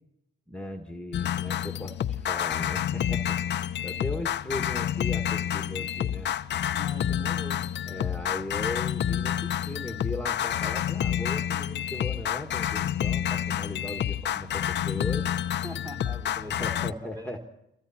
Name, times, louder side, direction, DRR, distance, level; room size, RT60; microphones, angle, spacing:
voice 1, 0.5-6.3 7.9-15.3 16.5-17.5, left 1 dB, 5° left, 4 dB, 1.9 m, -38 dB
sound 1, 1.1-16.9, left 10 dB, 60° left, 0.8 m, -29 dB
voice 2, 6.7-7.8 15.6-17.4, equal, 20° right, 2 dB, 3.3 m, -43 dB
28.5 x 22.5 x 4.3 m, 0.85 s
cardioid pair, 90°, 20 cm